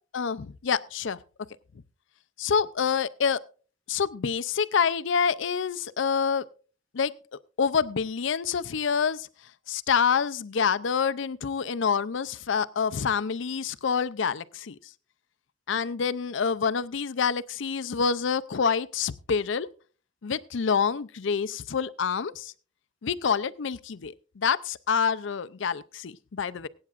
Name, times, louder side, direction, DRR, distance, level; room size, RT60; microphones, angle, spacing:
voice 1, 0.1-1.2 2.4-3.4 3.9-6.4 6.9-7.1 7.6-9.3 9.7-14.8 15.7-19.7 20.2-22.5 23.0-26.7, left 6 dB, 65° left, 14 dB, 0.5 m, -27 dB
23.5 x 8.8 x 2.5 m, 0.38 s
head